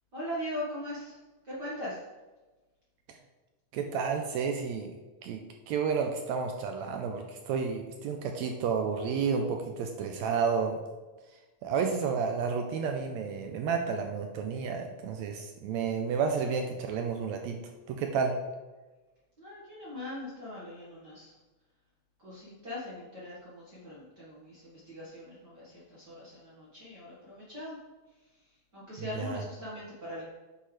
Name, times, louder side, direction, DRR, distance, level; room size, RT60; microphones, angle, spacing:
voice 1, 0.1-1.1 1.4-2.0 19.4-21.3 22.2-27.8 28.7-30.2, left 1 dB, 45° right, -7 dB, 1.7 m, -40 dB
voice 2, 3.7-4.9 5.2-5.4 5.7-10.8 11.3-17.6 17.9-18.4 29.0-29.4, right 6 dB, 80° right, 4 dB, 1.8 m, -31 dB
8.6 x 5.7 x 3.2 m, 1.2 s
omnidirectional pair, 3.3 m